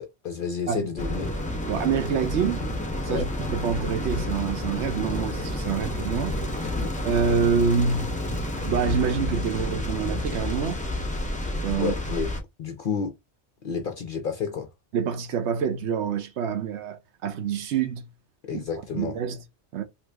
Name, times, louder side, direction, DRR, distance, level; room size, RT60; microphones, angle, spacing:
voice 1, 0.0-1.3 3.1-3.3 6.6-6.9 11.8-12.3 12.6-13.1 13.6-14.7 18.4-19.1, left 6 dB, 60° left, 0.6 m, -30 dB
sound 1, 1.0-12.4, left 1 dB, 10° left, 0.5 m, -30 dB
voice 2, 1.7-2.7 3.0-6.3 7.0-8.1 8.6-10.8 11.6-11.9 14.9-18.1 18.5-18.6 18.9-19.4 19.7-19.8, right 6 dB, 70° right, 0.9 m, -26 dB
2.9 x 2.5 x 3.2 m
omnidirectional pair, 1.2 m